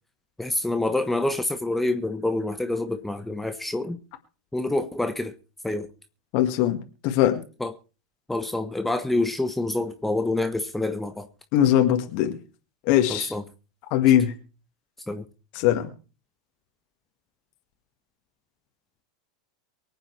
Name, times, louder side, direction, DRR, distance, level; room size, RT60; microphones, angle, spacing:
voice 1, 0.4-4.0 4.5-5.3 5.6-5.9 7.6-7.7 8.3-11.3 13.1-13.4 15.1-15.3, left 2 dB, 5° left, 1.1 m, -27 dB
voice 2, 6.3-7.4 11.5-12.4 12.9-13.3 13.9-14.3 15.5-15.9, left 11 dB, 50° left, 1.8 m, -21 dB
24.0 x 8.9 x 3.3 m
figure-of-eight pair, 90°, 3 cm